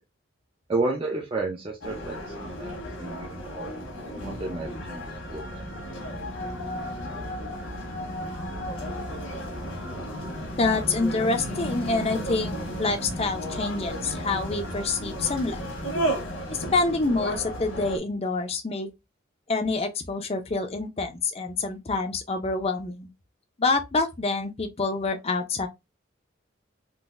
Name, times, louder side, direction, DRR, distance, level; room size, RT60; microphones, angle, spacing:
voice 1, 0.7-2.7 3.0-3.7 4.2-5.6, right 3 dB, 25° right, 0.5 m, -31 dB
sound 1, 1.8-18.0, equal, 75° left, 1.3 m, -33 dB
voice 2, 10.6-15.7 16.5-18.9 19.5-23.1 23.6-25.7, left 3 dB, 30° left, 0.5 m, -27 dB
3.8 x 2.6 x 2.5 m
head